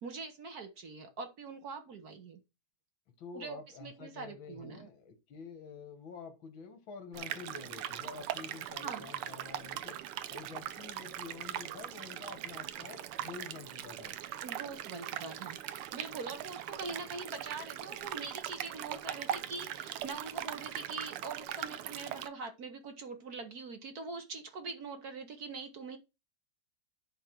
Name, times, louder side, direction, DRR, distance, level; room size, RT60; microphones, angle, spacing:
voice 1, 0.0-2.4 3.3-4.9 8.8-9.1 14.4-26.0, right 4 dB, 55° right, 7 dB, 1.3 m, -43 dB
voice 2, 3.2-10.0 10.3-14.1, left 5 dB, 65° left, 7 dB, 2.1 m, -48 dB
sound 1, 7.1-22.3, right 12 dB, 90° right, 1.6 m, -40 dB
10.5 x 3.7 x 4.4 m, 0.26 s
omnidirectional pair, 2.3 m